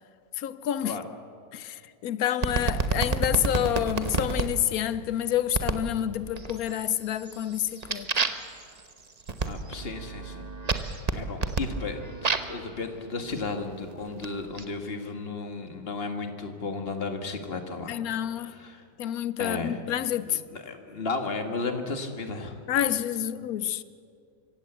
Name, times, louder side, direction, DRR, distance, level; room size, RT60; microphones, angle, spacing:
voice 1, 0.4-1.0 1.5-8.1 17.9-18.5 19.0-20.4 22.7-23.8, left 11 dB, 65° left, 1.0 m, -28 dB
sound 1, 2.4-4.5 5.5-5.9 6.3-6.8 7.2-12.6 13.4-14.6, right 4 dB, 30° right, 0.8 m, -30 dB
voice 2, 9.5-10.5 10.7-18.0 18.4-18.8 19.4-19.8 20.3-22.6, left 3 dB, 35° left, 1.8 m, -34 dB
24.5 x 16.0 x 8.0 m
omnidirectional pair, 2.0 m